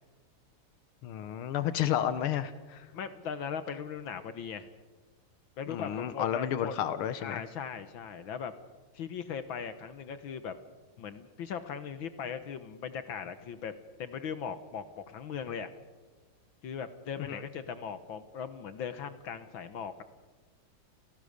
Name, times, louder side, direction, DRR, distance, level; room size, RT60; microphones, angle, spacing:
voice 1, 1.0-2.9 5.7-7.4 17.2-17.4, left 10 dB, 85° left, 12 dB, 1.8 m, -31 dB
voice 2, 2.9-4.7 5.6-6.8 7.2-8.5 8.9-10.6 11.0-13.7 14.0-15.7 16.6-20.0, left 7 dB, 70° left, 11 dB, 1.8 m, -39 dB
29.0 x 18.0 x 6.6 m, 1.3 s
omnidirectional pair, 2.3 m